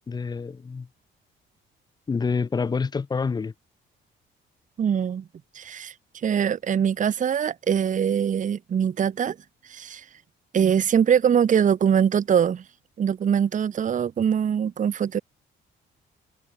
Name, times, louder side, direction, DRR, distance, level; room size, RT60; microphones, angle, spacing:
voice 1, 0.1-0.9 2.1-3.5, left 5 dB, 20° left, 0.5 m, -27 dB
voice 2, 4.8-5.2 5.5-5.9 6.2-9.4 9.7-10.0 10.5-12.6 13.0-15.2, right 8 dB, 40° right, 0.7 m, -22 dB
cardioid pair, 90°, 20 cm